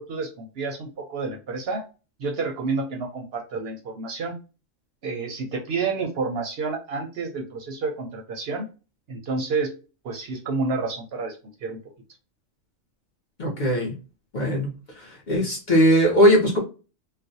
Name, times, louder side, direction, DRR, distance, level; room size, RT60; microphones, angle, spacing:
voice 1, 0.0-1.8 2.2-4.4 5.0-8.7 9.1-9.7 10.0-11.8, right 4 dB, 65° right, 2 dB, 0.7 m, -29 dB
voice 2, 13.4-13.9 14.3-14.7 15.0-16.6, equal, 50° left, -1 dB, 0.6 m, -19 dB
2.4 x 2.1 x 2.6 m, 0.32 s
omnidirectional pair, 1.3 m